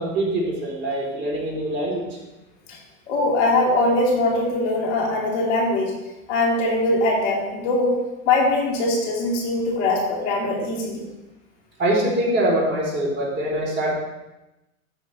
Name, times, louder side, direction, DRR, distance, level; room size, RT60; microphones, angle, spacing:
voice 1, 0.0-2.0 11.8-13.9, right 1 dB, 25° right, -3 dB, 3.6 m, -23 dB
voice 2, 3.1-5.9 6.3-8.0 8.2-11.1, left 2 dB, 60° left, -2 dB, 2.8 m, -21 dB
13.0 x 6.3 x 3.3 m, 0.99 s
hypercardioid pair, 100°, 41 cm